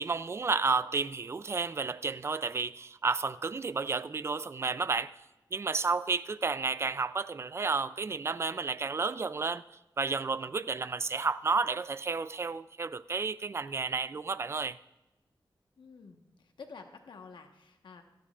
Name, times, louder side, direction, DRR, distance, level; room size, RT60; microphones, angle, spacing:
voice 1, 0.0-5.1 5.5-9.6 10.0-14.8, right 4 dB, 35° right, 16 dB, 0.3 m, -31 dB
voice 2, 15.8-18.0, left 4 dB, 85° left, 5 dB, 1.2 m, -50 dB
16.5 x 12.5 x 2.4 m, 1.0 s
wide cardioid pair, 140°, 8 cm